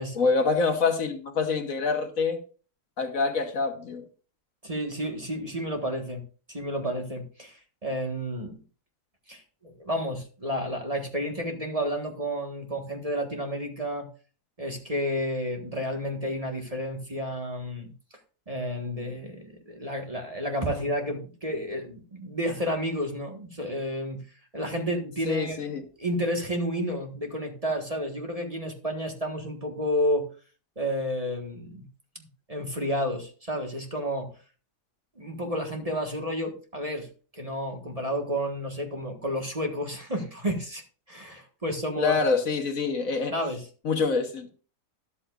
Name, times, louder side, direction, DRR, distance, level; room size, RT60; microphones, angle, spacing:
voice 1, 0.1-2.4 3.0-4.0 25.3-25.8 42.0-43.3 43.8-44.5, left 4 dB, 60° left, 1.6 m, -26 dB
voice 2, 4.6-6.2 6.5-8.6 9.3-14.1 14.6-17.9 18.5-24.2 24.5-25.6 26.0-30.3 30.8-31.8 32.1-34.3 35.2-40.8 41.1-42.1 43.3-43.6, equal, 25° right, 1.6 m, -31 dB
13.0 x 11.5 x 2.5 m
omnidirectional pair, 1.7 m